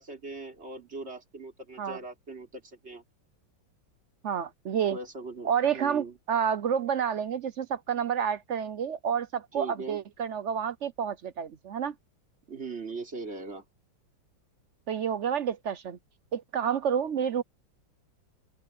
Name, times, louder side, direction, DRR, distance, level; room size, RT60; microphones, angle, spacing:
voice 1, 0.0-3.0 4.9-6.1 9.5-10.0 12.5-13.6, right 3 dB, 35° right, 3.7 m, -40 dB
voice 2, 4.2-5.0 5.4-11.9 14.9-16.0 16.3-17.4, right 8 dB, 65° right, 0.7 m, -29 dB
open air
omnidirectional pair, 2.0 m